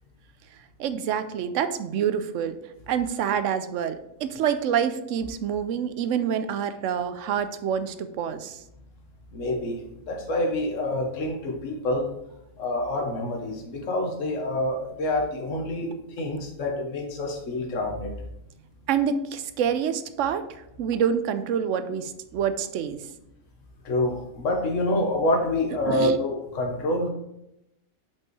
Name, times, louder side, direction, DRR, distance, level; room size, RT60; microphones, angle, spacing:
voice 1, 0.8-2.6 2.9-8.6 18.9-23.0 25.9-26.2, right 8 dB, 70° right, 10 dB, 0.9 m, -27 dB
voice 2, 9.3-12.1 12.6-18.1 23.8-27.1, left 1 dB, 65° left, 2 dB, 1.5 m, -27 dB
5.4 x 5.4 x 4.7 m, 0.83 s
omnidirectional pair, 1.5 m